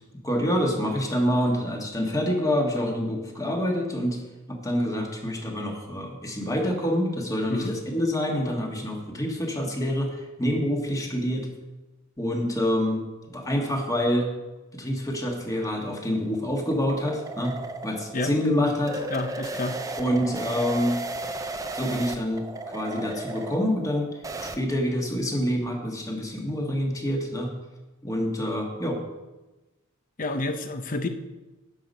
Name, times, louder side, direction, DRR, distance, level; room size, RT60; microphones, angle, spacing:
voice 1, 0.2-4.2 4.5-11.5 12.2-13.0 13.3-14.3 14.7-17.6 17.8-19.0 20.0-21.0 21.7-24.1 24.4-27.5 28.0-29.0, equal, 15° left, 1 dB, 1.6 m, -27 dB
sound 1, 15.6-24.6, right 2 dB, 15° right, 0.5 m, -35 dB
voice 2, 19.1-19.8 30.2-31.1, left 2 dB, 40° left, 8 dB, 0.8 m, -29 dB
10.5 x 6.8 x 5.4 m, 1.1 s
head